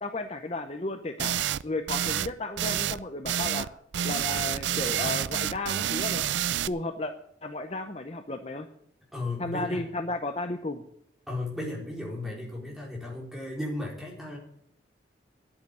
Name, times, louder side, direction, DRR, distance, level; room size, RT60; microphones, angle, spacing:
voice 1, 0.0-3.7 4.0-6.3 6.7-7.1 7.4-8.7 9.4-10.8, left 2 dB, 35° left, 7 dB, 0.8 m, -34 dB
sound 1, 1.2-1.6 1.9-2.3 2.6-3.0 3.2-3.7 3.9-6.7, right 10 dB, 80° right, 0.4 m, -28 dB
voice 2, 5.0-5.3 9.1-9.9 11.3-14.4, left 2 dB, ahead, -3 dB, 4.4 m, -35 dB
10.5 x 8.6 x 9.2 m, 0.71 s
head